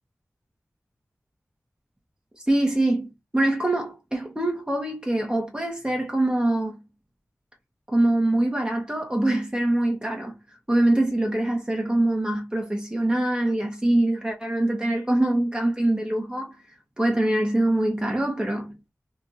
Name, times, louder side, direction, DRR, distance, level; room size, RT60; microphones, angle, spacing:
voice 1, 2.5-3.1 3.3-6.8 7.9-10.3 10.7-16.5 17.0-18.8, right 1 dB, 15° right, 1.1 m, -24 dB
3.0 x 2.5 x 3.9 m
wide cardioid pair, 70°, 5 cm